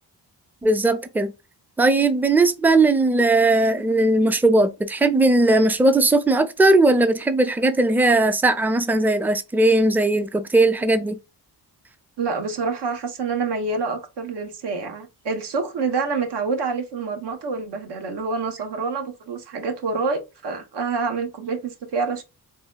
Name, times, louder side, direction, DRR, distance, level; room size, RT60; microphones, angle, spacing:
voice 1, 0.6-1.3 1.8-11.2, right 2 dB, 5° right, 0.4 m, -18 dB
voice 2, 12.2-22.2, right 4 dB, 80° right, 1.0 m, -27 dB
3.9 x 2.7 x 2.2 m
cardioid pair, 100°, 41 cm